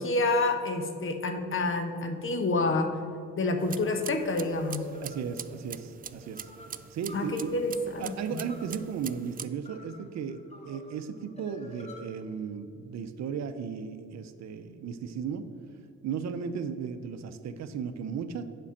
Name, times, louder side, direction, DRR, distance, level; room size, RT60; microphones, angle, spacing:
voice 1, 0.0-2.9 3.4-4.8 7.1-8.4, left 2 dB, 45° left, 7 dB, 1.1 m, -28 dB
sound 1, 3.6-9.5, right 8 dB, 30° right, 0.3 m, -44 dB
sound 2, 3.8-12.0, left 2 dB, 20° left, 1.2 m, -50 dB
voice 2, 5.0-6.5 6.9-7.5 8.0-10.4 10.7-15.5 16.0-18.4, right 7 dB, 60° right, 10 dB, 0.7 m, -35 dB
7.5 x 5.4 x 7.2 m, 2.3 s
cardioid pair, 90°, 30 cm